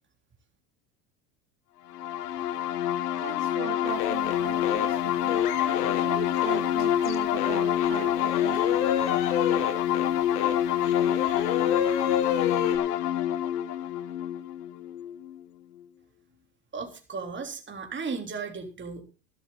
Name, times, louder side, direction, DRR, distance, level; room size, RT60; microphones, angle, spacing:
sound 1, 1.9-15.4, left 10 dB, 90° left, 0.9 m, -26 dB
voice 1, 2.8-9.3, right 12 dB, 70° right, 2.5 m, -40 dB
sound 2, 3.8-4.4 4.6-4.9 5.3-6.0 6.3-6.6 7.0-10.0 10.4-10.5 10.8-12.8, left 9 dB, 70° left, 3.2 m, -30 dB
voice 2, 16.7-19.0, right 5 dB, 25° right, 3.6 m, -35 dB
13.0 x 13.0 x 4.0 m
hypercardioid pair, 85°, 46 cm